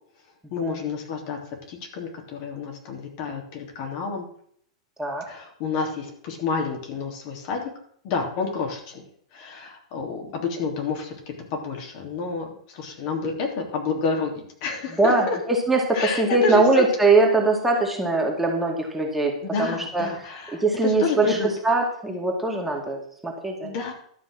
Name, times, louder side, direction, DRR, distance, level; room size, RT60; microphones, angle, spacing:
voice 1, 0.5-1.4 1.7-4.3 5.3-7.7 8.0-9.0 9.3-15.4 15.9-16.8 19.4-21.5 23.6-23.9, left 4 dB, 50° left, 1 dB, 3.1 m, -29 dB
voice 2, 15.0-19.3 19.6-20.1 20.5-23.7, right 3 dB, 5° right, 0 dB, 2.3 m, -22 dB
12.5 x 6.0 x 6.2 m, 0.62 s
figure-of-eight pair, 100°, 3 cm